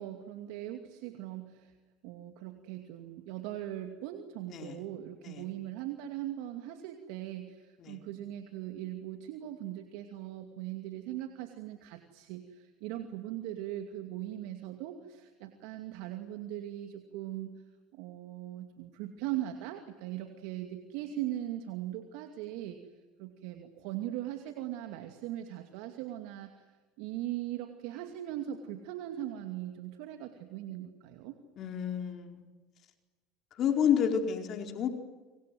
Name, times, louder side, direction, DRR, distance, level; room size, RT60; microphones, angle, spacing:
voice 1, 0.0-1.7 2.0-17.6 17.9-22.8 23.2-26.7 27.0-31.3, right 13 dB, 70° right, 6 dB, 2.5 m, -40 dB
voice 2, 31.6-32.4 33.6-34.9, left 8 dB, 50° left, 5 dB, 4.5 m, -30 dB
28.5 x 25.5 x 7.9 m, 1.3 s
hypercardioid pair, 85°, 0 cm